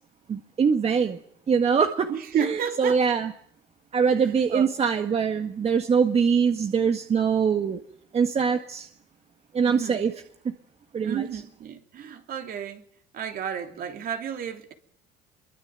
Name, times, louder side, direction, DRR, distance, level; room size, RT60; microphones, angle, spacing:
voice 1, 0.3-1.2 1.5-2.1 2.4-3.3 3.9-7.8 8.1-8.9 9.5-10.1 10.5-10.6 10.9-11.3, right 6 dB, 35° right, 1.7 m, -23 dB
voice 2, 2.1-3.0 4.5-4.7 9.6-10.0 11.0-12.8 13.1-14.7, right 8 dB, 55° right, 3.3 m, -31 dB
25.0 x 23.0 x 9.2 m
cardioid pair, 115°, 18 cm